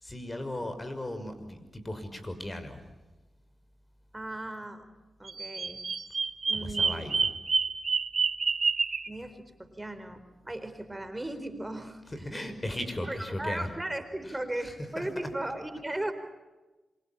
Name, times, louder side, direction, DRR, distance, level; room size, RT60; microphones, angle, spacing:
voice 1, 0.0-2.8 6.5-7.3 12.1-13.7 14.2-14.4 15.0-15.1, left 1 dB, 25° left, 9 dB, 5.9 m, -37 dB
voice 2, 4.1-4.9 5.2-5.8 6.5-7.1 9.1-12.4 13.0-16.1, right 1 dB, 15° right, 9 dB, 4.3 m, -37 dB
Bird vocalization bird call bird song, 5.2-9.1, right 4 dB, 55° right, 2.0 m, -28 dB
27.0 x 24.5 x 8.9 m, 1.1 s
cardioid pair, 55°, 0 cm